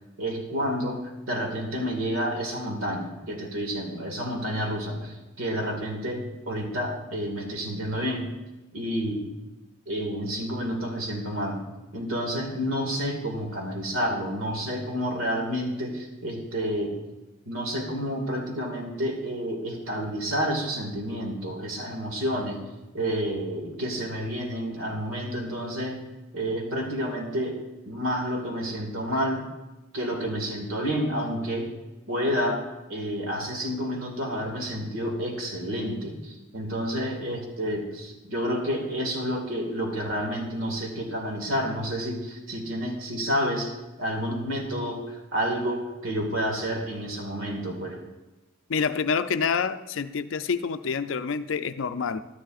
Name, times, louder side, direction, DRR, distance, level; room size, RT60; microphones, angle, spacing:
voice 1, 0.2-1.0 1.3-8.3 8.7-9.3 9.9-11.6 11.9-16.9 17.5-22.6 22.9-26.0 26.3-27.6 27.8-29.5 29.9-31.7 32.1-32.6 32.9-43.7 44.0-48.0, equal, 85° right, 1 dB, 2.0 m, -29 dB
voice 2, 48.7-52.2, left 5 dB, 70° left, 11 dB, 0.4 m, -27 dB
12.5 x 10.0 x 2.4 m, 1.1 s
head